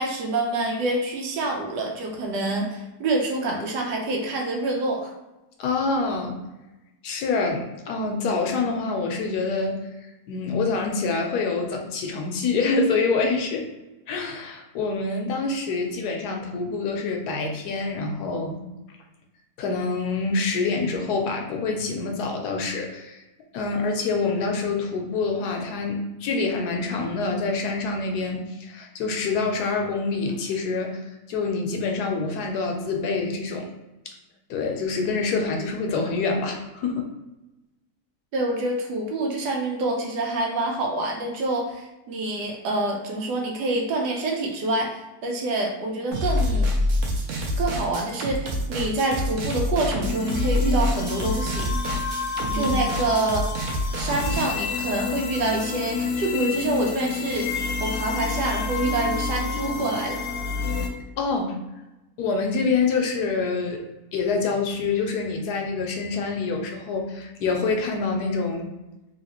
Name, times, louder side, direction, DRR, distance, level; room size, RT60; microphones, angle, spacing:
voice 1, 0.0-5.1 38.3-46.7 47.6-51.7 52.5-53.5 54.0-57.5 57.8-60.2, right 2 dB, 85° right, 1 dB, 1.3 m, -26 dB
voice 2, 5.6-6.4 7.0-9.8 10.3-13.7 14.1-18.6 19.6-23.2 23.5-31.0 31.3-33.7 34.1-34.2 34.5-37.1 52.5-52.7 61.2-61.5 62.2-63.8 64.1-68.7, left 4 dB, 75° left, 3 dB, 1.1 m, -26 dB
sound 1, 46.1-54.5, left 1 dB, 65° right, 0.9 m, -26 dB
sound 2, 50.0-60.9, left 5 dB, 90° left, 0.6 m, -29 dB
3.1 x 2.8 x 2.9 m, 1.0 s
omnidirectional pair, 1.8 m